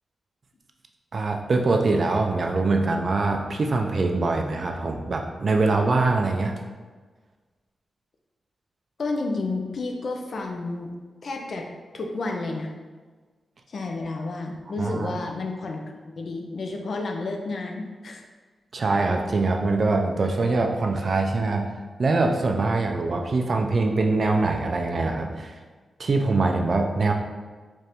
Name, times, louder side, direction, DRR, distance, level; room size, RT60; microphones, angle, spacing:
voice 1, 1.1-6.5 14.8-15.1 18.7-21.7 22.0-25.6 26.0-27.1, right 3 dB, 50° right, 3 dB, 0.4 m, -23 dB
voice 2, 9.0-10.9 11.2-11.7 11.9-12.7 13.7-15.8 16.2-18.2, left 3 dB, 60° left, 2 dB, 0.4 m, -31 dB
4.2 x 2.5 x 3.4 m, 1.4 s
cardioid pair, 90°, 0 cm